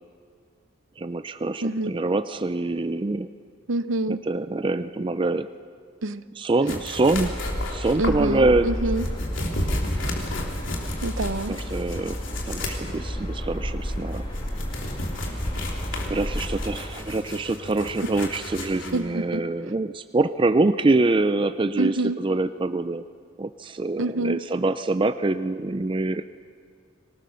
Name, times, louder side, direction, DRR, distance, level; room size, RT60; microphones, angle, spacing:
voice 1, 1.0-3.3 4.1-5.5 6.4-7.4 7.7-8.7 11.5-12.2 12.5-14.2 16.1-23.0 23.4-26.2, right 2 dB, 25° right, 11 dB, 0.4 m, -25 dB
voice 2, 1.6-1.9 3.7-4.2 6.0-6.2 8.0-9.1 11.0-11.6 18.9-19.4 21.8-22.2 24.0-24.4, right 2 dB, 85° right, 13 dB, 0.8 m, -26 dB
sound 1, 6.7-19.0, left 1 dB, 70° left, 3.3 m, -34 dB
sound 2, 7.1-16.9, equal, 25° left, 2.6 m, -32 dB
25.0 x 19.0 x 6.4 m, 2.1 s
head